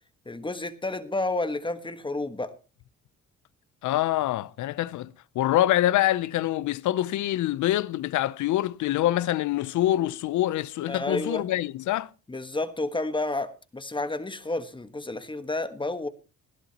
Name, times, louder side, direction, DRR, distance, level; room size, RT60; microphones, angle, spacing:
voice 1, 0.3-2.5 10.9-11.5 12.3-16.1, left 2 dB, 15° left, 1.4 m, -30 dB
voice 2, 3.8-12.1, left 14 dB, 75° left, 0.6 m, -25 dB
20.0 x 12.5 x 2.9 m
cardioid pair, 90°, 30 cm